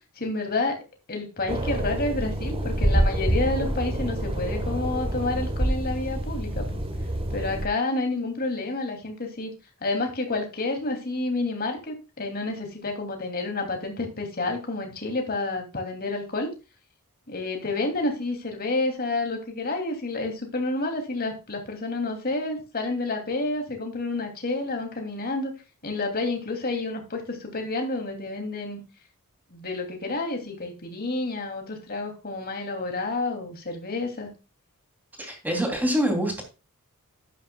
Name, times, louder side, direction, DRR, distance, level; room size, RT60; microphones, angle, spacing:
voice 1, 0.2-0.8 1.1-6.8 7.3-9.5 9.8-16.5 17.3-25.5 25.8-28.8 29.5-34.3, left 2 dB, 45° left, 4 dB, 2.8 m, -29 dB
sound 1, 1.5-7.7, right 1 dB, 25° right, 1.4 m, -27 dB
voice 2, 35.2-36.4, equal, 10° right, 3 dB, 3.0 m, -25 dB
11.5 x 10.5 x 2.3 m, 0.29 s
head